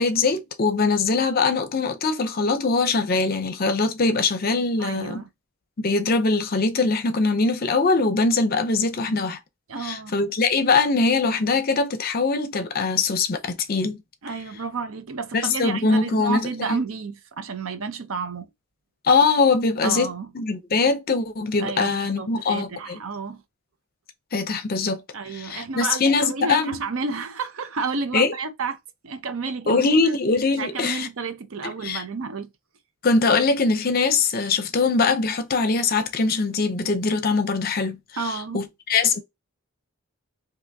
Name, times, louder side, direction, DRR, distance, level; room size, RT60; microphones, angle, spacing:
voice 1, 0.0-5.2 5.8-9.4 9.8-14.0 15.3-16.8 19.0-23.0 24.3-25.0 25.3-26.8 28.1-28.3 29.7-31.1 31.6-32.0 33.0-38.0 38.2-39.2, left 4 dB, 45° left, 0.6 m, -22 dB
voice 2, 4.8-5.3 9.7-10.1 14.2-18.5 19.8-20.3 21.6-23.4 25.1-28.8 29.0-29.9 30.6-32.5 38.2-38.7, right 4 dB, 70° right, 0.6 m, -31 dB
3.4 x 2.7 x 2.7 m
head